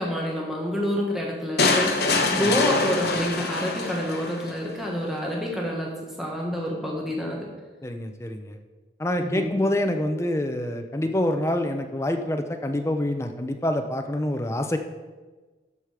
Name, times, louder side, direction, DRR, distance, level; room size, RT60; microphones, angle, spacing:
voice 1, 0.0-5.9 6.2-7.5 9.2-9.6, left 1 dB, ahead, -2 dB, 1.2 m, -28 dB
sound 1, 1.6-4.6, left 3 dB, 60° left, 1.1 m, -24 dB
voice 2, 2.4-2.7 7.8-8.6 9.0-14.8, left 1 dB, 15° left, 6 dB, 0.6 m, -26 dB
12.5 x 4.9 x 4.9 m, 1.3 s
head